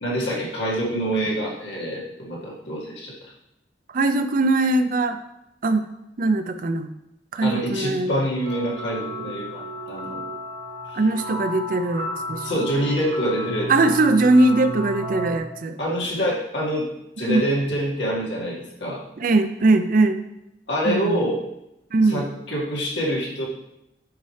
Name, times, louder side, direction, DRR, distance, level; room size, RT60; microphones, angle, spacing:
voice 1, 0.0-3.1 7.4-10.2 10.9-11.0 12.4-13.9 15.8-19.0 20.7-21.4 22.0-23.5, equal, 85° left, -3 dB, 1.8 m, -26 dB
voice 2, 3.9-5.2 5.6-5.9 6.2-6.9 7.3-8.2 10.9-12.6 13.7-15.8 17.2-17.5 19.2-20.2 20.8-21.2 21.9-22.2, right 2 dB, 50° right, 9 dB, 0.5 m, -20 dB
sound 1, 8.4-15.4, equal, 90° right, 1.9 m, -33 dB
9.3 x 4.2 x 3.2 m, 0.87 s
head